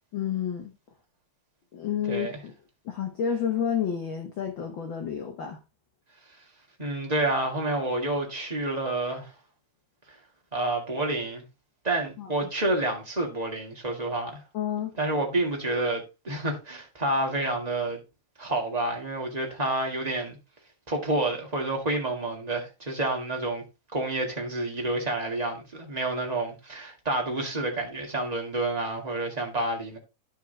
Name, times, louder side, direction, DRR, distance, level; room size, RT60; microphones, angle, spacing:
voice 1, 0.1-0.7 1.7-2.5 2.8-5.6 12.2-12.3 14.5-14.9, left 8 dB, 55° left, 1.5 m, -30 dB
voice 2, 6.8-9.3 10.5-11.4 11.8-14.4 15.0-18.0 18.4-20.4 20.9-23.6 23.9-30.0, right 2 dB, 15° right, 1.9 m, -29 dB
11.5 x 4.7 x 4.0 m
omnidirectional pair, 3.4 m